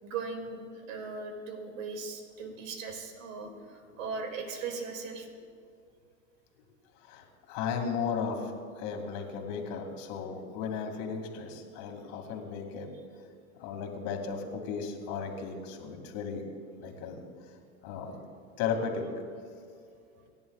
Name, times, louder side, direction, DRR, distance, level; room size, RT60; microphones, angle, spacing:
voice 1, 0.0-5.3, right 4 dB, 80° right, 4 dB, 2.5 m, -38 dB
voice 2, 7.0-12.9 13.6-16.4 16.8-17.2 17.8-18.2 18.6-19.1, left 6 dB, 55° left, 3 dB, 2.4 m, -35 dB
27.5 x 10.5 x 2.4 m, 2.3 s
supercardioid pair, 115°, 39 cm